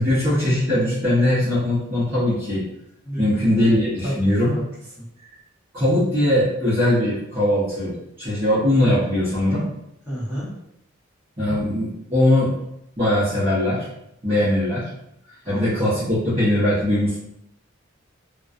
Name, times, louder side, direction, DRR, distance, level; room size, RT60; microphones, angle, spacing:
voice 1, 0.0-2.6 3.2-4.5 5.7-9.6 11.4-12.6 13.0-13.9 14.2-14.9 15.5-17.2, left 1 dB, 25° right, -12 dB, 0.7 m, -20 dB
voice 2, 3.0-3.8 4.0-4.1 4.4-4.6 10.0-10.5 15.4-15.7, equal, 10° right, -11 dB, 1.1 m, -30 dB
2.3 x 2.2 x 2.5 m, 0.79 s
head